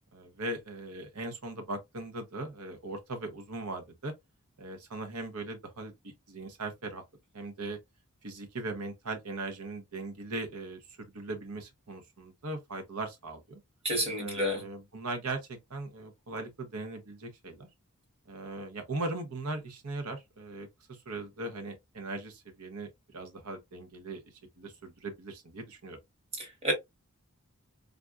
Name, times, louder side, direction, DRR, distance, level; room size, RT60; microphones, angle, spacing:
voice 1, 0.1-4.1 4.6-7.0 7.3-7.8 8.2-13.6 14.2-17.7 18.3-24.2 24.6-26.0, right 2 dB, 80° right, 0.9 m, -39 dB
voice 2, 13.8-14.7 26.4-26.7, equal, 25° right, 1.1 m, -30 dB
3.6 x 2.5 x 2.3 m
head